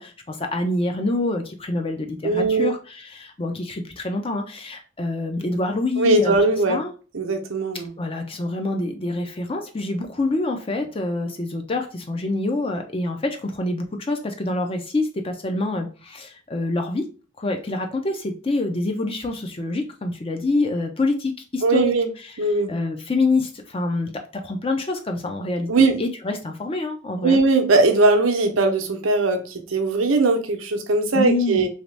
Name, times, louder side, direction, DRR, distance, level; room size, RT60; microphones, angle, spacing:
voice 1, 0.0-6.4 6.7-6.9 8.0-17.1 17.4-21.9 22.7-27.4 31.1-31.6, left 2 dB, 30° left, 5 dB, 0.5 m, -26 dB
voice 2, 2.2-2.7 6.0-6.8 7.1-7.9 21.6-22.1 22.4-22.7 25.7-26.0 27.2-31.7, right 3 dB, 85° right, 5 dB, 0.7 m, -19 dB
3.0 x 2.8 x 3.2 m, 0.36 s
head